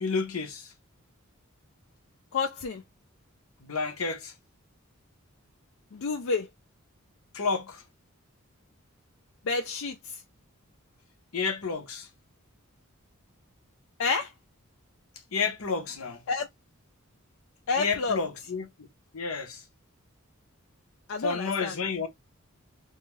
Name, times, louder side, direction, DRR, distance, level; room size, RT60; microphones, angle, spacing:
voice 1, 0.0-0.7 3.6-4.3 7.3-7.8 11.3-12.1 15.3-16.2 17.8-18.9 19.1-19.6 21.2-22.1, left 4 dB, 80° left, 0.8 m, -30 dB
voice 2, 2.3-2.8 5.9-6.5 9.4-10.2 14.0-14.3 16.3-16.5 17.7-18.2 21.1-21.7, left 4 dB, 65° left, 0.4 m, -29 dB
2.7 x 2.4 x 3.0 m
head